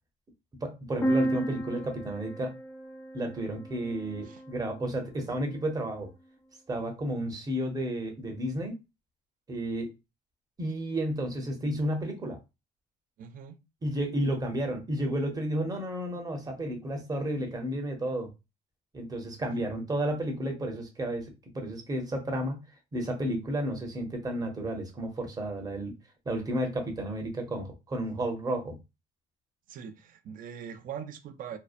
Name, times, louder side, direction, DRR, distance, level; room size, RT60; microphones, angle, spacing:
voice 1, 0.6-2.5 3.1-6.1 6.7-8.8 9.5-9.9 10.6-12.4 13.8-18.3 18.9-22.6 22.9-25.9 26.3-28.8, right 1 dB, 20° right, 0.7 m, -32 dB
sound 1, 1.0-4.8, right 1 dB, 15° left, 0.5 m, -33 dB
voice 2, 13.2-13.6 29.7-31.6, right 8 dB, 55° right, 0.4 m, -42 dB
2.7 x 2.0 x 2.4 m
cardioid pair, 110°, 17 cm